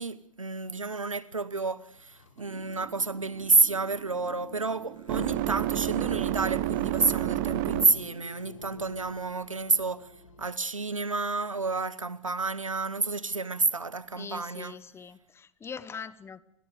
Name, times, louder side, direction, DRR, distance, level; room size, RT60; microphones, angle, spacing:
voice 1, 0.0-10.1 10.4-14.7, right 3 dB, 90° right, 1.1 m, -29 dB
sound 1, 1.8-10.5, left 1 dB, 75° left, 4.8 m, -50 dB
sound 2, 2.4-8.2, right 14 dB, 45° right, 1.3 m, -31 dB
voice 2, 14.2-16.4, left 6 dB, 15° left, 1.1 m, -42 dB
29.5 x 23.5 x 5.1 m
figure-of-eight pair, 100°, 17 cm